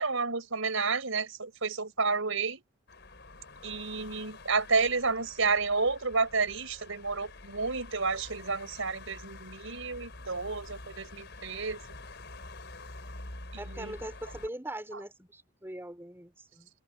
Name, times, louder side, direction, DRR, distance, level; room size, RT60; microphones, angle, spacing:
voice 1, 0.0-2.6 3.6-11.8 13.5-13.9 14.9-15.0, right 4 dB, 75° right, 4.2 m, -31 dB
sound 1, 2.9-14.5, left 2 dB, 55° left, 5.6 m, -47 dB
voice 2, 13.6-16.7, right 1 dB, 10° right, 4.4 m, -41 dB
head